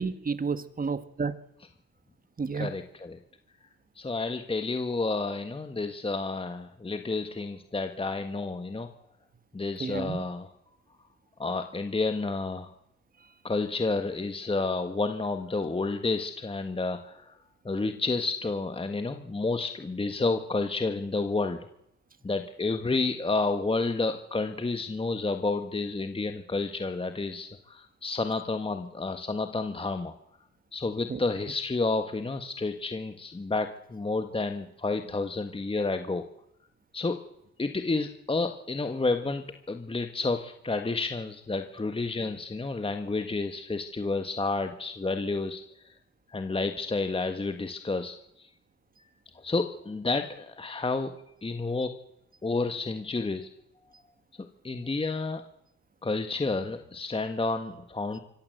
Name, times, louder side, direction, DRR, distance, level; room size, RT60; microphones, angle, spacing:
voice 1, 0.0-1.3 2.4-2.7 9.8-10.2 31.1-31.2, right 5 dB, 30° right, 12 dB, 1.8 m, -31 dB
voice 2, 2.5-3.2 3.9-8.9 9.5-10.5 11.4-12.7 13.4-17.4 17.6-21.7 22.2-30.1 30.7-36.2 36.9-37.2 37.6-45.9 46.3-48.5 49.3-51.1 51.4-51.9 52.4-53.5 54.4-55.4 56.0-58.2, left 3 dB, 20° left, 7 dB, 1.6 m, -30 dB
24.5 x 16.5 x 7.9 m, 0.78 s
cardioid pair, 90°, 30 cm